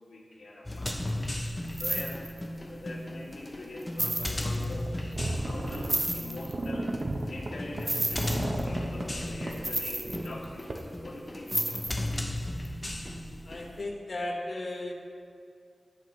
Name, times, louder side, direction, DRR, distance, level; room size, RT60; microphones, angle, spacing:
voice 1, 0.1-1.0 1.4-2.2 2.7-6.9 7.3-11.8, left 1 dB, 85° left, -6 dB, 2.4 m, -44 dB
sound 1, 0.7-13.8, left 1 dB, 25° left, 0.7 m, -36 dB
sound 2, 0.8-1.1 1.6-2.4 3.2-3.3 3.8-4.6 5.7-6.5 7.8-8.6 9.5-10.8 11.5-12.2 12.6-12.7, right 1 dB, 20° right, 0.8 m, -32 dB
sound 3, 4.9-5.0 5.1-6.0 6.5-9.1 9.4-9.5 10.1-10.3 10.7-10.8, right 2 dB, 50° right, 1.0 m, -33 dB
voice 2, 13.5-14.9, left 1 dB, 55° left, 0 dB, 1.4 m, -35 dB
18.0 x 6.3 x 3.2 m, 2.3 s
wide cardioid pair, 75°, 0 cm